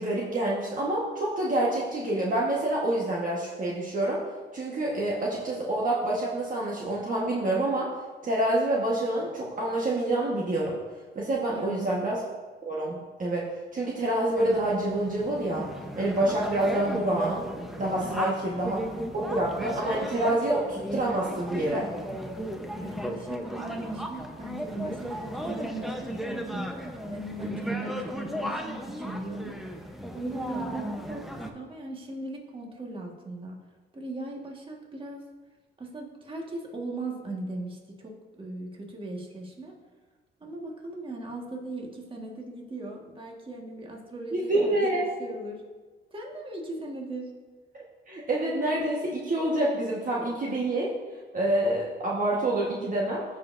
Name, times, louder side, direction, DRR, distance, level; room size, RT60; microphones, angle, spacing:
voice 1, 0.0-4.2 4.5-7.9 8.2-10.8 11.1-12.2 12.6-15.6 16.0-17.4 17.8-18.8 19.1-21.9 44.3-45.1 47.7-50.9 51.3-53.2, right 1 dB, 40° right, -4 dB, 1.4 m, -27 dB
voice 2, 11.5-12.1 18.0-18.3 22.8-26.8 27.1-29.8 30.1-33.6 33.9-35.2 35.8-39.8 40.4-45.6 46.1-47.3, right 2 dB, 25° right, -1 dB, 1.7 m, -38 dB
sound 1, 14.4-31.5, equal, ahead, 0.9 m, -35 dB
15.5 x 5.4 x 2.7 m, 1.4 s
cardioid pair, 90°, 20 cm